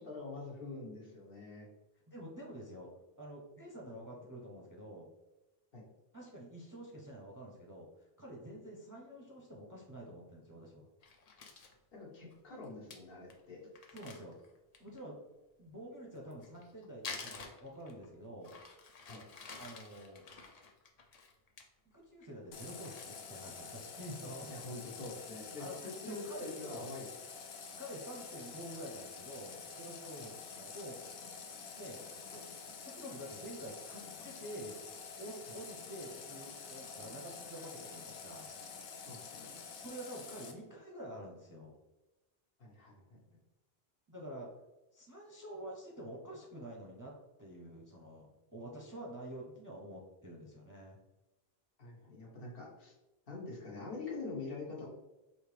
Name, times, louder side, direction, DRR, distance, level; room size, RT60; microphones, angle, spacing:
voice 1, 0.0-1.7 5.7-5.8 11.9-13.6 19.1-19.2 24.5-27.1 30.2-30.3 35.5-35.6 39.1-39.5 42.6-43.2 51.8-52.9 53.3-54.8, left 3 dB, 65° left, -4 dB, 1.3 m, -45 dB
voice 2, 2.1-2.9 3.2-5.1 6.1-10.8 13.9-14.3 14.8-15.2 15.6-18.5 19.6-20.2 21.9-24.6 25.6-26.9 27.8-31.2 31.5-34.7 35.2-38.5 39.8-41.8 44.1-44.5 44.9-47.1 47.4-51.0, right 1 dB, 25° right, -2 dB, 0.5 m, -48 dB
Crumpling crinkling, 11.0-11.7 12.3-12.4 12.6-12.7 12.9-13.0 13.3-13.4 13.7-15.0 16.2-18.1 18.4-21.6 22.0-22.3 22.6-23.8 24.2-24.3 24.7-25.2, left 4 dB, 50° left, 0.5 m, -49 dB
Water tap faucet, 22.5-40.5, left 5 dB, 90° left, 0.9 m, -48 dB
4.8 x 2.8 x 3.2 m, 1.0 s
omnidirectional pair, 1.0 m